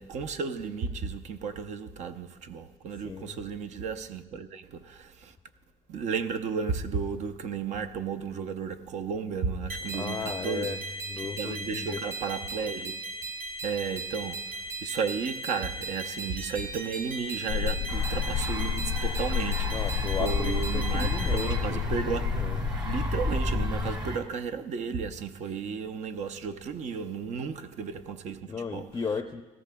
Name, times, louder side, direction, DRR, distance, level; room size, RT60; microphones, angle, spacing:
voice 1, 0.0-5.4 5.9-10.8 11.2-13.0 13.6-14.5 14.8-22.4 22.8-28.9, right 5 dB, 60° right, 0.7 m, -34 dB
voice 2, 3.0-3.4 9.9-10.8 11.1-12.0 19.7-21.8 22.1-22.8 28.5-29.4, left 5 dB, 25° left, 0.5 m, -35 dB
sound 1, 9.7-21.5, right 2 dB, 80° right, 3.9 m, -37 dB
sound 2, 17.5-24.0, left 11 dB, 75° left, 0.4 m, -31 dB
sound 3, 17.9-24.2, right 1 dB, 35° right, 1.7 m, -33 dB
19.0 x 14.0 x 2.3 m
cardioid pair, 115°, 14 cm